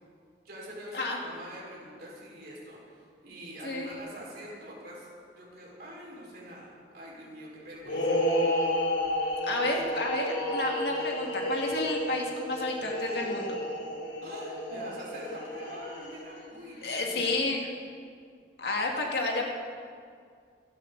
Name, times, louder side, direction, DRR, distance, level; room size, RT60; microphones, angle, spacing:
voice 1, 0.4-6.7 6.9-8.2 14.2-17.3, equal, 55° right, -4 dB, 5.1 m, -45 dB
sound 1, 7.8-16.4, equal, 85° left, 3.7 m, -31 dB
voice 2, 9.4-13.5 16.8-17.7 18.6-19.4, left 2 dB, 60° left, -1 dB, 2.2 m, -30 dB
25.5 x 12.0 x 4.0 m, 2.2 s
head